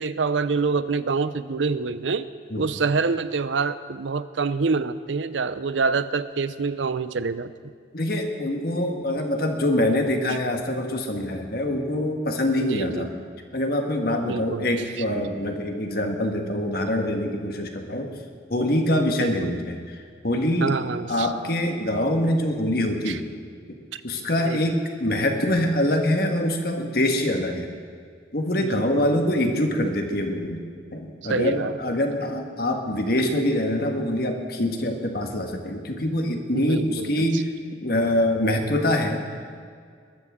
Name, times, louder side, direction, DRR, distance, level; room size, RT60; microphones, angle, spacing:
voice 1, 0.0-2.3 2.6-7.7 12.6-13.1 14.2-14.7 19.2-19.6 20.6-21.3 23.1-23.2 23.9-24.0 24.4-24.7 28.6-29.1 31.2-31.7 36.5-37.3, right 4 dB, 85° right, 14 dB, 0.6 m, -26 dB
voice 2, 7.9-13.1 13.5-18.1 18.5-20.8 21.0-23.3 24.0-27.7 28.3-30.6 30.9-37.5 37.8-39.3, left 1 dB, 55° left, 4 dB, 1.6 m, -24 dB
22.0 x 13.5 x 3.7 m, 2.1 s
head